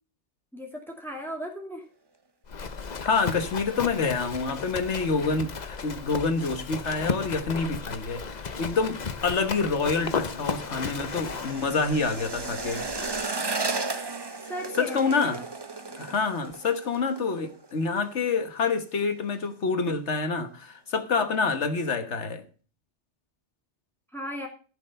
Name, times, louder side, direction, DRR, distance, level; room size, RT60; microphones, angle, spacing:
voice 1, 0.5-1.8 14.5-15.4 24.1-24.5, equal, ahead, 2.7 m, -36 dB
Livestock farm animals working animals, 2.5-13.3, left 5 dB, 40° left, 0.9 m, -35 dB
voice 2, 3.0-12.9 14.8-15.4 16.0-22.4, left 4 dB, 80° left, 1.6 m, -27 dB
sound 1, 9.1-18.1 18.4-18.7 19.0-19.5 19.9-20.0, right 3 dB, 25° right, 0.8 m, -35 dB
14.5 x 6.5 x 5.4 m
omnidirectional pair, 1.2 m